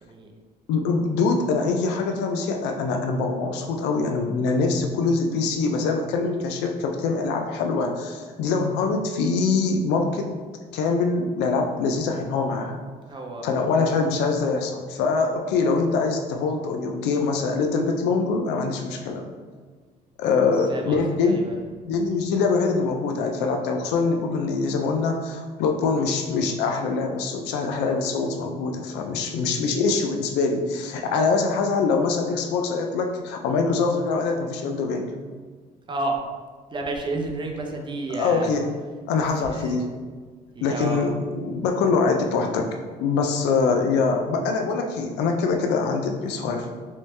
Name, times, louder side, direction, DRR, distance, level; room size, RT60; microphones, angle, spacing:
voice 1, 0.7-10.3 10.7-12.8 13.4-19.2 20.2-21.4 21.9-35.1 38.1-38.8 39.1-39.9 40.6-42.7 43.0-46.7, left 4 dB, 85° left, 3 dB, 0.4 m, -24 dB
voice 2, 13.1-13.5 20.2-21.5 29.2-29.5 35.9-36.2 36.7-38.5 39.2-39.7 40.6-41.1, right 2 dB, 30° right, 2 dB, 0.6 m, -31 dB
3.2 x 3.1 x 3.2 m, 1.5 s
cardioid pair, 110°, 17 cm